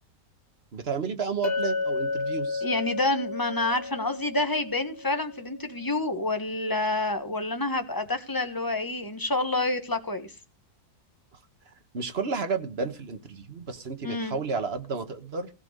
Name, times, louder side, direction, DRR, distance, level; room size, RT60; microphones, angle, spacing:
voice 1, 0.7-2.6 11.7-15.5, right 5 dB, 40° right, 9 dB, 1.4 m, -32 dB
Chink clink, 1.4-5.7, left 3 dB, 35° left, 1.3 m, -32 dB
voice 2, 2.6-10.3 14.0-14.3, left 2 dB, 15° left, 8 dB, 1.3 m, -28 dB
16.0 x 5.6 x 6.6 m, 0.33 s
omnidirectional pair, 1.8 m